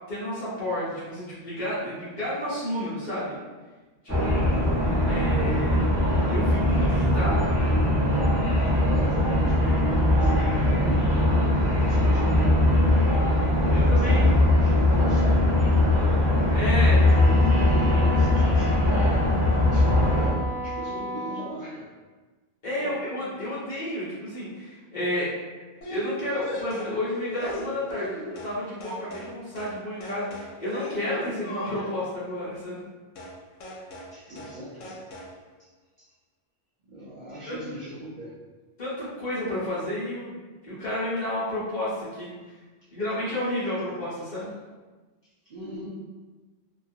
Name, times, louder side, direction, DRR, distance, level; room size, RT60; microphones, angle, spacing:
voice 1, 0.1-3.4 4.0-4.4 5.1-5.9 6.3-7.6 13.7-14.3 16.5-17.0 22.6-25.4 25.9-32.9 37.5-37.7 38.8-42.6 42.9-44.5, left 1 dB, 45° left, -9 dB, 0.8 m, -31 dB
sound 1, 4.1-20.3, left 1 dB, 10° left, 0.8 m, -21 dB
voice 2, 4.5-4.8 8.5-11.1 11.7-13.2 13.6-15.9 16.9-19.3 19.7-21.9 22.8-23.0 34.1-35.0 35.6-35.7 36.0-36.1 36.9-38.3 45.4-45.9, equal, 55° right, -9 dB, 0.5 m, -37 dB
Wind instrument woodwind instrument, 17.0-21.5, equal, 80° right, 1.1 m, -34 dB
sound 2, 25.8-28.6 28.8-29.3 29.6-29.8 30.0-32.1 33.2-33.4 33.6-34.1 34.4-34.6 34.8-35.3, left 2 dB, 85° left, 1.0 m, -38 dB
2.3 x 2.3 x 2.6 m, 1.3 s
omnidirectional pair, 1.3 m